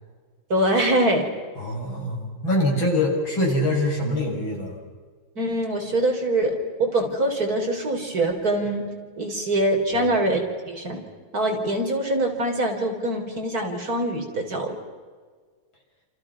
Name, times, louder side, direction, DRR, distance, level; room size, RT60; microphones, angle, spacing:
voice 1, 0.5-1.3 5.4-8.8 9.2-11.0 11.3-14.8, right 1 dB, 45° right, 3 dB, 4.2 m, -24 dB
voice 2, 1.6-4.8 9.9-10.1, left 1 dB, 70° left, 0 dB, 7.5 m, -24 dB
29.5 x 27.5 x 6.0 m, 1.5 s
omnidirectional pair, 2.3 m